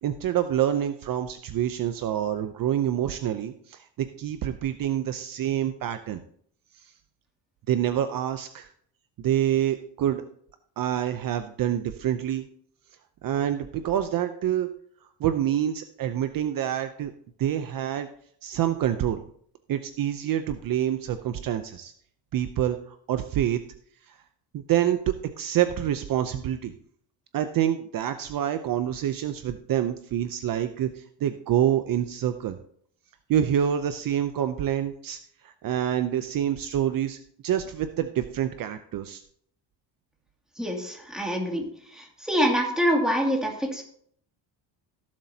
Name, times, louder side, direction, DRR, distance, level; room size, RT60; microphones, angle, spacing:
voice 1, 0.0-3.8 4.2-6.2 7.7-8.7 9.2-10.2 10.8-12.4 13.2-14.7 15.2-17.1 17.4-18.1 18.4-19.2 19.7-21.9 22.3-23.6 24.1-24.2 24.5-25.0 25.4-26.7 27.3-32.6 33.3-37.2 37.4-39.2, right 10 dB, 50° right, 9 dB, 0.7 m, -27 dB
voice 2, 40.6-41.7 41.9-43.8, equal, ahead, -1 dB, 2.4 m, -25 dB
16.5 x 7.4 x 2.8 m, 0.63 s
cardioid pair, 135°, 43 cm